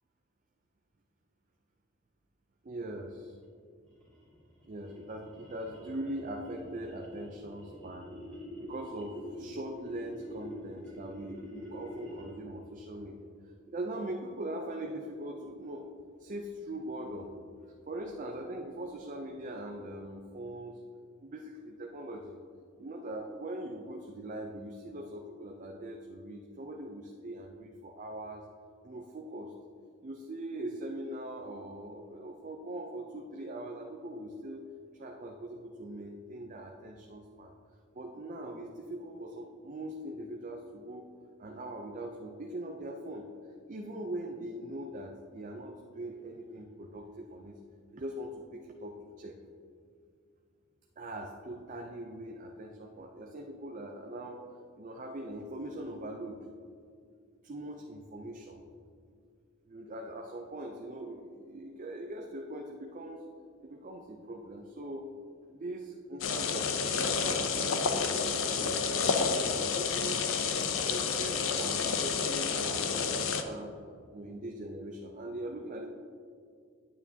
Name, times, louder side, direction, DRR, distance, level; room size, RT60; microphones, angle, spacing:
voice 1, 2.6-3.4 4.7-8.1 8.6-13.3 13.7-15.9 16.2-17.3 17.6-20.8 21.2-22.4 22.8-28.5 28.8-29.5 30.0-34.7 34.9-37.5 37.9-41.1 41.4-43.3 43.7-47.6 47.9-49.4 51.0-54.5 54.8-56.4 57.4-58.6 59.7-63.2 63.6-65.1 65.5-69.1 69.4-70.3 70.6-73.8 74.1-75.9, right 1 dB, 40° right, 2 dB, 0.5 m, -41 dB
sound 1, 3.8-12.5, equal, 5° left, 1.9 m, -46 dB
sound 2, 66.2-73.4, left 5 dB, 85° left, 0.6 m, -30 dB
9.1 x 8.4 x 2.8 m, 2.3 s
head